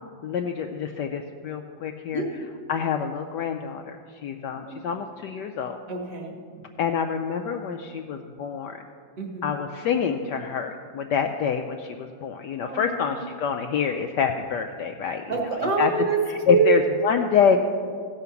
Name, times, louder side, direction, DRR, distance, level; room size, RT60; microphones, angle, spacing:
voice 1, 0.2-2.2 2.7-5.7 6.8-8.8 9.4-15.2 15.8-15.9 16.3-17.6, left 7 dB, 75° left, 4 dB, 1.0 m, -26 dB
voice 2, 2.1-2.4 4.6-4.8 5.9-6.3 9.2-9.5 12.6-13.0 15.3-16.2 16.5-16.8, right 5 dB, 45° right, 1 dB, 1.6 m, -25 dB
15.0 x 5.8 x 7.0 m, 2.2 s
omnidirectional pair, 2.3 m